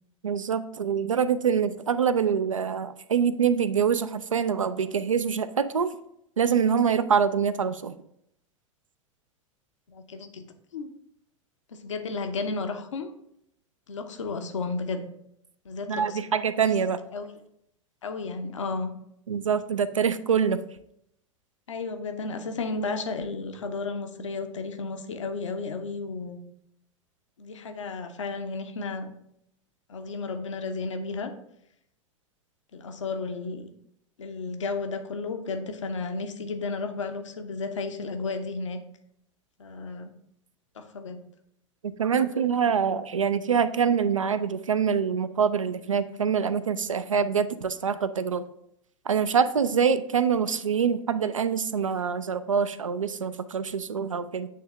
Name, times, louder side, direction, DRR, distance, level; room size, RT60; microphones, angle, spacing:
voice 1, 0.2-6.0 6.4-8.0 15.9-17.0 19.3-20.6 41.8-48.4 49.1-54.5, right 7 dB, 80° right, 13 dB, 0.4 m, -25 dB
voice 2, 9.9-10.4 10.7-10.9 11.7-13.1 13.9-15.0 15.6-16.3 17.1-17.3 18.0-18.9 21.7-26.4 27.4-29.1 29.9-31.3 32.7-33.7 34.2-38.8 39.6-40.1 40.7-41.2, left 4 dB, 70° left, 7 dB, 0.7 m, -33 dB
8.4 x 3.5 x 3.3 m, 0.74 s
figure-of-eight pair, 90°, 16 cm